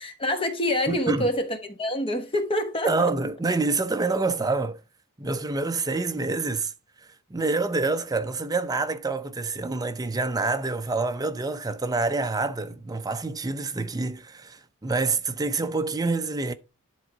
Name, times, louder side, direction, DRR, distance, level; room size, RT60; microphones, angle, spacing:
voice 1, 0.0-3.1, left 1 dB, 25° left, 1.1 m, -26 dB
voice 2, 0.9-1.3 2.8-4.8 5.2-6.7 7.3-16.5, right 3 dB, 15° right, 0.5 m, -27 dB
10.5 x 3.8 x 4.5 m
head